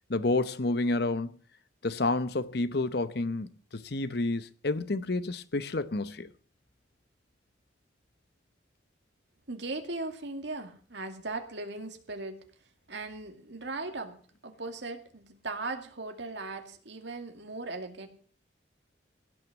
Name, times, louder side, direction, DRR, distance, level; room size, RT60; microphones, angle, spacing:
voice 1, 0.1-1.4 1.8-6.3, left 2 dB, 55° left, 0.9 m, -30 dB
voice 2, 9.5-12.4 12.9-14.2 14.4-18.1, right 3 dB, 65° right, 2.3 m, -38 dB
17.0 x 6.4 x 8.3 m
head